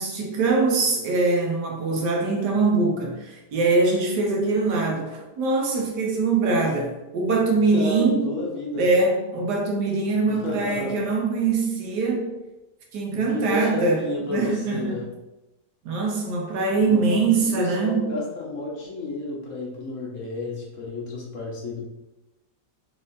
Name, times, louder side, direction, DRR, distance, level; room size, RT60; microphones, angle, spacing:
voice 1, 0.0-8.2 8.8-12.3 12.9-14.0 14.3-14.9 15.8-18.1, right 3 dB, 85° right, 0 dB, 1.4 m, -23 dB
voice 2, 7.7-8.8 10.2-10.9 13.1-15.1 16.9-21.8, left 2 dB, 55° left, -2 dB, 1.1 m, -31 dB
4.2 x 3.8 x 2.5 m, 1.0 s
omnidirectional pair, 1.7 m